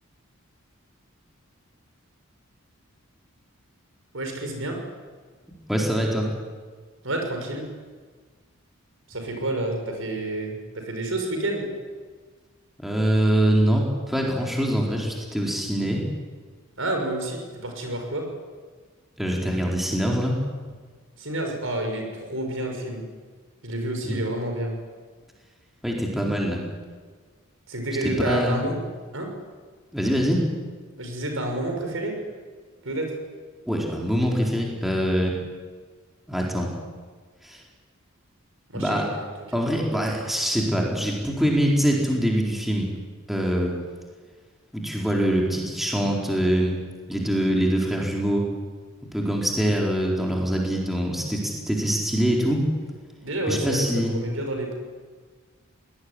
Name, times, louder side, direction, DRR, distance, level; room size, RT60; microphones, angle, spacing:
voice 1, 4.1-4.8 7.0-7.7 9.1-11.7 16.8-18.3 21.2-23.0 23.6-24.7 27.7-28.8 29.1-29.3 31.0-32.2 32.8-33.2 38.7-39.3 53.2-54.8, right 1 dB, 70° right, 3 dB, 6.2 m, -29 dB
voice 2, 5.7-6.3 12.8-16.0 19.2-20.4 24.1-24.2 25.8-26.6 28.0-28.6 29.9-30.4 33.7-35.3 36.3-36.7 37.4-37.6 38.7-39.1 39.5-42.9 43.3-43.7 44.7-46.8 47.1-48.4 49.1-52.6 53.5-54.1, equal, ahead, -2 dB, 4.3 m, -24 dB
24.0 x 19.5 x 10.0 m, 1.5 s
head